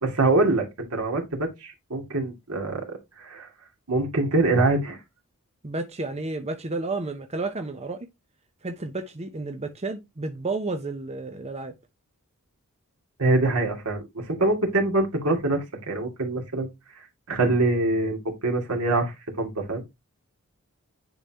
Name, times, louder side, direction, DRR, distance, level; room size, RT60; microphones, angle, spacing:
voice 1, 0.0-2.8 3.2-3.5 3.9-5.0 13.2-16.7 17.3-19.8, right 2 dB, 80° right, 2.4 m, -24 dB
voice 2, 5.6-8.1 8.6-11.7, right 3 dB, 30° right, 0.8 m, -31 dB
10.0 x 4.0 x 2.9 m
head